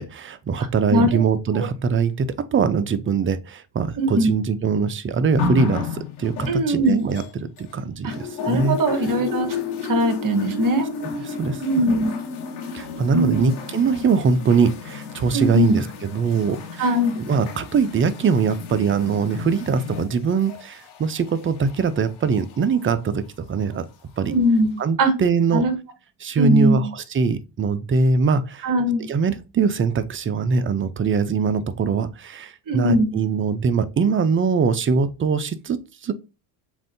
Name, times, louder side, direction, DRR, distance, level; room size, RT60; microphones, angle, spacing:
voice 1, 0.0-8.8 11.0-11.6 12.7-15.8 16.1-16.9 17.3-23.9 24.2-24.3 24.8-25.6 26.2-28.7 29.1-36.1, right 5 dB, 25° right, 0.6 m, -22 dB
voice 2, 0.9-1.2 1.5-1.7 4.0-4.3 6.5-7.0 8.0-9.5 9.8-10.9 11.6-12.1 13.1-13.5 15.3-15.8 16.8-17.1 24.3-24.7 25.0-25.1 25.5-25.7 26.4-26.8 28.6-29.1 32.7-33.1, equal, 40° right, 1.4 m, -20 dB
sound 1, 5.4-7.7 8.1-22.8 23.7-23.8, left 5 dB, 90° left, 1.7 m, -32 dB
7.2 x 2.6 x 2.7 m
supercardioid pair, 85°, 50 cm